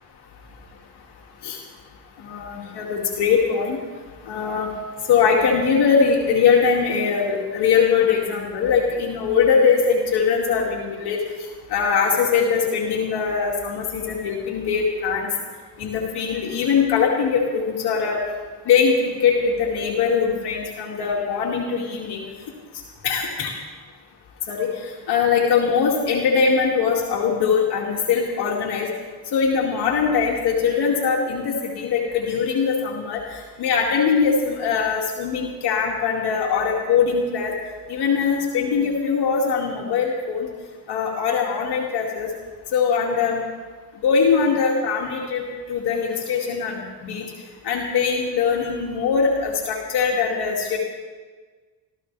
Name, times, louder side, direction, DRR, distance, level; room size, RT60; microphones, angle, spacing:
voice 1, 2.2-3.8 4.3-4.7 5.1-11.2 11.7-15.3 15.8-18.2 18.7-22.2 23.0-23.5 24.5-24.7 25.1-28.9 29.3-33.2 33.6-37.5 37.9-40.5 40.9-42.3 42.7-43.4 44.0-45.4 45.7-47.2 47.6-50.8, left 6 dB, 70° left, -2 dB, 2.5 m, -21 dB
24.0 x 14.5 x 3.4 m, 1.4 s
cardioid pair, 110°, 40 cm